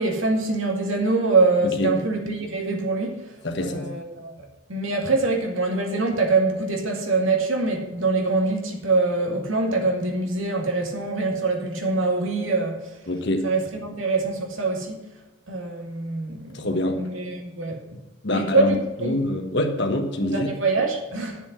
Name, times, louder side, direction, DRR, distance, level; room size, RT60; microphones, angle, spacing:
voice 1, 0.0-3.2 3.6-12.9 13.4-15.0 15.5-16.7 17.0-18.0 18.3-19.5 20.2-21.4, right 3 dB, 70° right, 2.2 m, -24 dB
voice 2, 3.4-3.9 13.1-13.4 16.5-17.0 18.2-20.5, left 1 dB, 55° left, 1.4 m, -25 dB
11.0 x 7.0 x 6.0 m
head